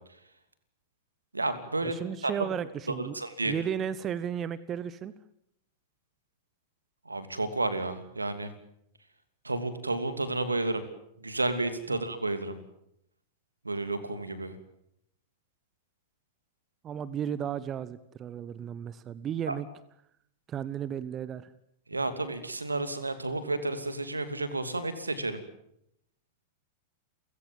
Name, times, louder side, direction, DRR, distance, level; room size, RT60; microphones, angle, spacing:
voice 1, 1.3-2.5 3.0-3.5 7.1-8.5 9.4-10.8 11.2-12.6 13.6-14.6 19.5-19.6 21.9-25.4, right 2 dB, 85° right, 11 dB, 2.8 m, -31 dB
voice 2, 1.8-3.1 3.4-5.1 11.9-12.0 16.8-19.7 20.5-21.5, right 9 dB, 30° right, 18 dB, 1.1 m, -34 dB
30.0 x 16.5 x 9.3 m, 0.75 s
figure-of-eight pair, 95°, 0 cm